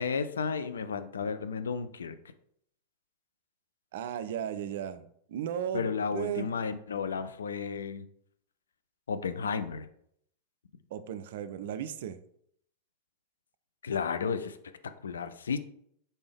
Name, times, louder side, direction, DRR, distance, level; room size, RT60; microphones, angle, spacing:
voice 1, 0.0-2.2 5.7-8.1 9.1-9.9 13.8-14.6 15.0-15.6, left 5 dB, 70° left, 0.3 m, -32 dB
voice 2, 3.9-6.5 10.9-12.2, right 9 dB, 55° right, 0.3 m, -36 dB
4.0 x 3.4 x 3.4 m
figure-of-eight pair, 90°, 0 cm